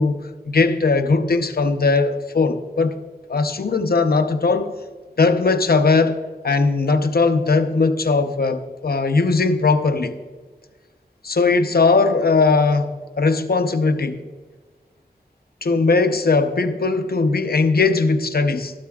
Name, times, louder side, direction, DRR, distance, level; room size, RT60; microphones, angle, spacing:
voice 1, 0.0-2.9 3.3-4.7 5.2-6.2 6.4-10.2 11.2-14.2 15.6-18.7, left 3 dB, 85° left, 8 dB, 0.7 m, -19 dB
14.0 x 12.0 x 2.3 m, 1.4 s
wide cardioid pair, 65°, 16 cm